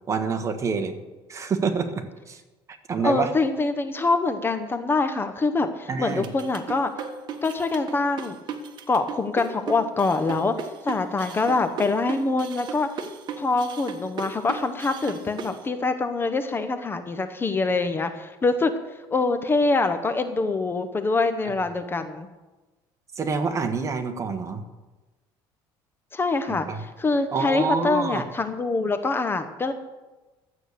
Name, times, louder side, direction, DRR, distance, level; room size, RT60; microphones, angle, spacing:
voice 1, 0.1-1.0 1.3-2.4 2.7-3.3 5.9-6.3 23.1-24.6 26.5-26.8 27.3-28.2, right 5 dB, 30° right, 8 dB, 1.3 m, -27 dB
voice 2, 3.0-6.9 7.4-8.4 8.9-10.5 10.8-12.9 13.4-18.7 19.1-22.3 26.1-29.7, left 3 dB, 20° left, 9 dB, 1.0 m, -24 dB
sound 1, 6.1-15.6, right 6 dB, 50° right, 1.5 m, -35 dB
12.5 x 8.3 x 6.7 m, 1.2 s
cardioid pair, 120°, 10 cm